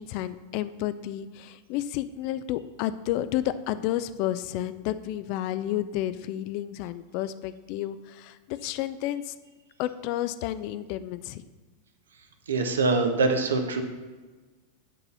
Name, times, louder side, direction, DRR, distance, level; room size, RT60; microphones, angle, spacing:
voice 1, 0.0-9.3 9.8-11.4, left 13 dB, 45° left, 13 dB, 0.4 m, -31 dB
voice 2, 12.5-13.8, right 3 dB, 65° right, 6 dB, 0.9 m, -24 dB
8.2 x 4.0 x 6.8 m, 1.3 s
figure-of-eight pair, 90°, 0 cm